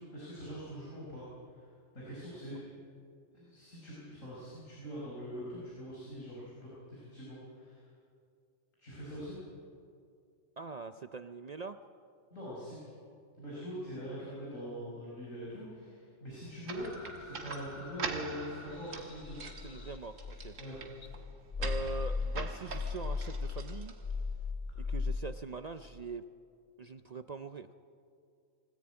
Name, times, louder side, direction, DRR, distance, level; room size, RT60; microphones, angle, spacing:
voice 1, 0.0-2.6 3.3-7.9 8.8-9.4 12.3-12.9 13.4-19.9 20.6-20.8, equal, 80° left, -7 dB, 5.7 m, -43 dB
voice 2, 10.6-11.8 19.6-20.6 21.6-23.9 24.8-26.2 26.8-27.7, right 4 dB, 50° right, 9 dB, 0.5 m, -42 dB
sound 1, 16.6-24.3, right 5 dB, 80° right, 1.8 m, -44 dB
sound 2, 16.8-20.7 21.0-25.2, left 4 dB, 35° left, 1.1 m, -38 dB
22.0 x 14.0 x 8.9 m, 2.3 s
omnidirectional pair, 1.3 m